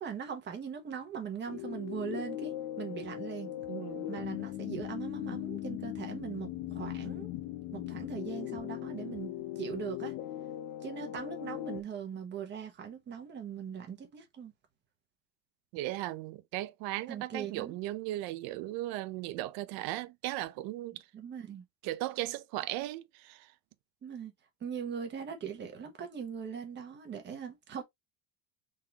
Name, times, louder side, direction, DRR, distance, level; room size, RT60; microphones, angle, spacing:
voice 1, 0.0-3.5 4.1-7.3 7.7-9.3 9.6-10.1 10.8-14.5 17.1-17.8 21.1-21.6 24.0-24.3 24.6-27.8, right 7 dB, 25° right, 1.0 m, -40 dB
sound 1, 1.5-11.8, left 13 dB, 45° left, 0.5 m, -39 dB
voice 2, 3.7-4.1 15.7-21.0 21.8-23.5, right 16 dB, 60° right, 0.6 m, -37 dB
3.7 x 3.7 x 2.9 m
cardioid pair, 180°, 42 cm